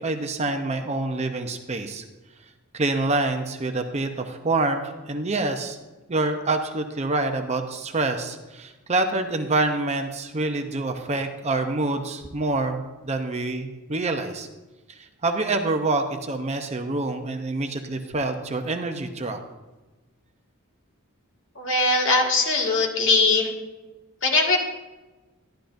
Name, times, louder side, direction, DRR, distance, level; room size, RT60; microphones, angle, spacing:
voice 1, 0.0-2.0 2.7-5.8 6.1-14.5 14.9-19.4, right 2 dB, 30° right, 5 dB, 0.7 m, -26 dB
voice 2, 21.6-23.5 24.2-24.6, left 3 dB, 60° left, -1 dB, 1.9 m, -20 dB
12.5 x 11.5 x 2.6 m, 1.2 s
head